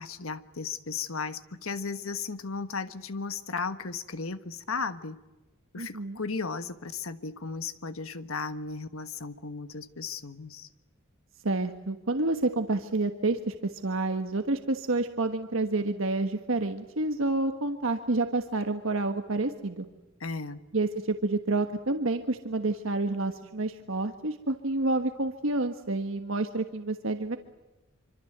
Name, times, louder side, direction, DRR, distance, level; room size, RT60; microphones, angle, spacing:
voice 1, 0.0-5.2 5.7-10.7 20.2-20.6, left 4 dB, 80° left, 11 dB, 1.5 m, -35 dB
voice 2, 5.7-6.2 11.4-19.9 20.7-27.4, right 2 dB, 70° right, 7 dB, 1.4 m, -29 dB
26.0 x 25.5 x 8.0 m, 1.1 s
head